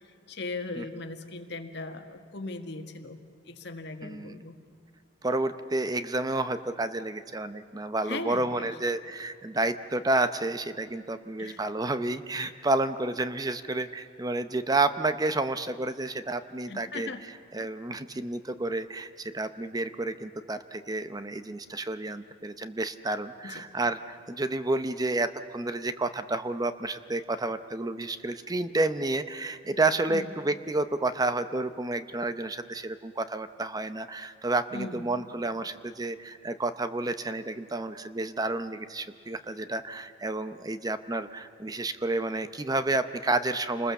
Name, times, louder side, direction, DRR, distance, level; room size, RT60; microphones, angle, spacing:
voice 1, 0.3-3.2 3.5-4.6 8.0-8.7 11.4-11.6 16.7-17.2 23.4-23.6 30.1-30.3 34.7-35.1, left 3 dB, 65° left, 6 dB, 1.8 m, -38 dB
voice 2, 4.0-4.4 5.2-17.1 17.5-43.9, right 2 dB, 20° right, 11 dB, 0.7 m, -30 dB
28.5 x 21.0 x 7.1 m, 2.3 s
head